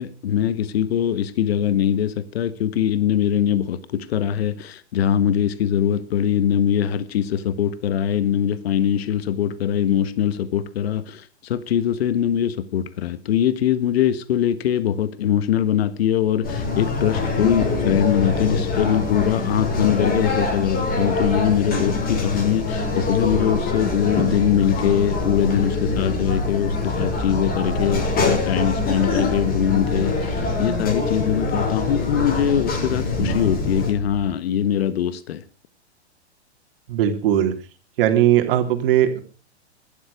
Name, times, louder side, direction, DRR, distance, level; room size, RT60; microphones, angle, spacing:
voice 1, 0.0-35.4, left 9 dB, 65° left, 1.5 m, -22 dB
sound 1, 16.4-33.9, left 3 dB, 25° left, 6.0 m, -24 dB
sound 2, 23.8-34.3, left 3 dB, ahead, 4.8 m, -34 dB
voice 2, 36.9-37.5 38.0-39.2, right 11 dB, 55° right, 3.4 m, -18 dB
16.5 x 13.0 x 5.0 m
hypercardioid pair, 115°, 34 cm